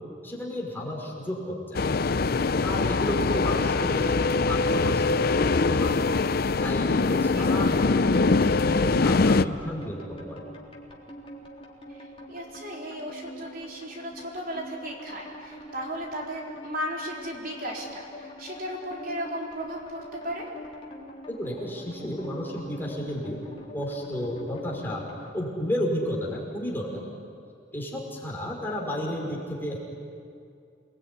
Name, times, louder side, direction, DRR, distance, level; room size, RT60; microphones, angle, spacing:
voice 1, 0.2-1.8 2.6-6.1 6.6-10.5 21.4-23.4 23.7-25.0 25.3-27.0 27.7-29.8, left 1 dB, 10° left, -2 dB, 5.5 m, -32 dB
sound 1, 1.7-9.4, left 3 dB, 55° left, 0.6 m, -23 dB
sound 2, 7.0-25.3, equal, 30° left, 3.8 m, -45 dB
voice 2, 11.9-20.5, equal, 50° right, -1 dB, 4.1 m, -35 dB
28.5 x 20.5 x 9.9 m, 2.4 s
head